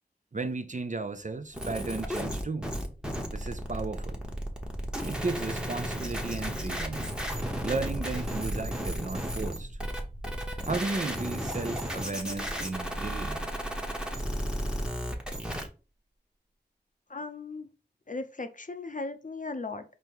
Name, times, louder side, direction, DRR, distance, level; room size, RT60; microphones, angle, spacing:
voice 1, 0.3-2.8 3.3-4.2 5.0-7.1 7.6-9.8 10.6-13.5, right 3 dB, 45° right, 0.5 m, -34 dB
sound 1, 1.5-15.7, equal, 5° right, 0.9 m, -34 dB
sound 2, 1.5-14.8, equal, 65° right, 0.9 m, -44 dB
voice 2, 17.1-17.7 18.1-19.8, left 3 dB, 45° left, 0.6 m, -37 dB
5.2 x 2.2 x 4.5 m
wide cardioid pair, 50°, 18 cm